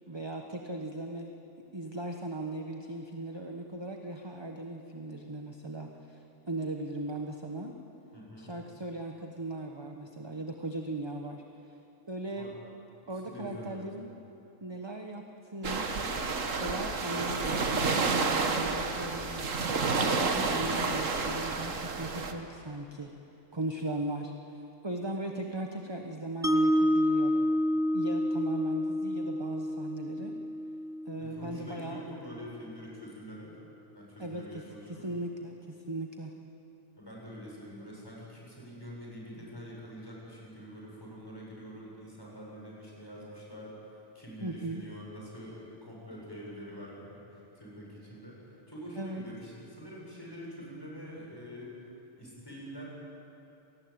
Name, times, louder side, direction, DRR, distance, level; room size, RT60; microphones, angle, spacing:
voice 1, 0.1-1.3 1.7-7.7 8.4-11.4 11.7-11.8 12.1-12.5 13.1-14.1 14.6-16.1 16.5-23.1 23.5-27.4 27.9-30.3 31.1-32.0 34.2-36.3 44.4-44.8 49.0-49.2, right 1 dB, 20° right, 3 dB, 1.3 m, -38 dB
voice 2, 8.1-8.6 12.3-12.5 13.0-13.9 31.2-33.5 33.9-35.1 37.0-51.7 52.2-52.9, equal, 20° left, -4 dB, 7.5 m, -45 dB
sound 1, 15.6-22.3, right 4 dB, 85° right, 1.9 m, -30 dB
Mallet percussion, 26.4-32.6, equal, 5° right, 1.1 m, -29 dB
27.5 x 19.0 x 8.9 m, 2.9 s
omnidirectional pair, 1.3 m